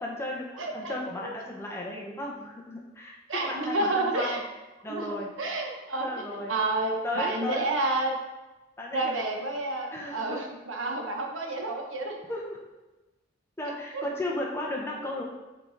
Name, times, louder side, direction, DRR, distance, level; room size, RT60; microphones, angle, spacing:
voice 1, 0.0-4.4 4.8-5.3 6.0-6.5 7.0-7.6 8.8-9.2 9.9-10.4 12.3-12.6 13.6-15.2, left 1 dB, 15° left, -3 dB, 1.0 m, -35 dB
voice 2, 0.6-0.9 1.2-1.3 3.3-4.4 4.9-8.2 8.9-12.1 13.9-14.0 15.0-15.1, right 2 dB, 80° right, 1 dB, 1.1 m, -30 dB
7.9 x 3.7 x 4.0 m, 1.1 s
head